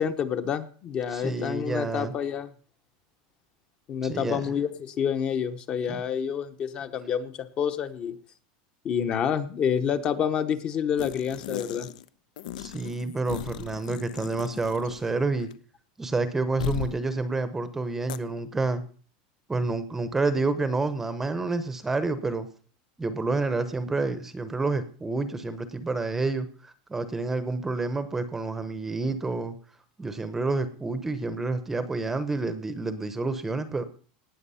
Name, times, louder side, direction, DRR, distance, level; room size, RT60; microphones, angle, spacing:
voice 1, 0.0-2.5 3.9-8.2 8.8-11.9, left 8 dB, 25° left, 10 dB, 0.9 m, -28 dB
voice 2, 1.1-2.1 4.0-4.4 5.9-6.0 12.6-15.5 16.0-18.8 19.5-22.5 23.0-29.6 30.0-33.8, right 3 dB, 10° right, 12 dB, 0.8 m, -29 dB
sound 1, 11.0-12.1 12.4-15.1 15.4-15.5 16.6-17.0 18.1-18.2, left 11 dB, 80° left, 0.8 m, -37 dB
18.5 x 8.4 x 5.6 m, 0.42 s
supercardioid pair, 175°, 4 cm